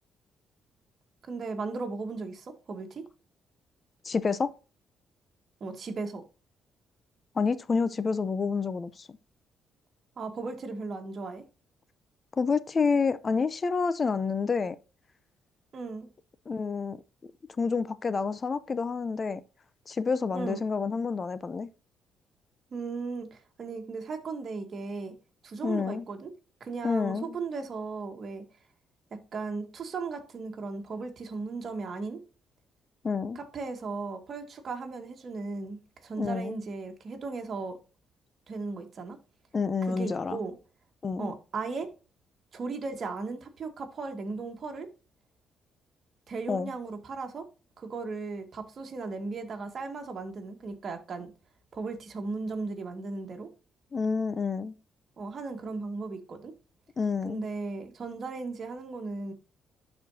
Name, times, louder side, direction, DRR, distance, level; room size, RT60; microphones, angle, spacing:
voice 1, 1.3-3.0 5.6-6.2 10.2-11.4 15.7-16.1 20.3-20.6 22.7-25.1 25.4-26.3 26.6-28.4 29.1-32.2 33.4-37.8 38.5-39.2 39.9-40.6 41.2-41.9 42.5-44.9 46.3-47.4 47.8-51.3 51.7-53.5 55.2-56.5 57.3-59.3, right 4 dB, 50° right, 1.7 m, -36 dB
voice 2, 4.0-4.5 7.4-9.1 12.4-14.8 16.5-17.0 17.6-19.4 19.9-21.7 25.6-26.1 26.8-27.4 33.0-33.4 36.2-36.6 39.5-40.4 41.0-41.3 46.5-46.7 53.9-54.8 57.0-57.4, left 5 dB, 35° left, 0.6 m, -28 dB
12.0 x 4.4 x 2.7 m
cardioid pair, 90°, 0 cm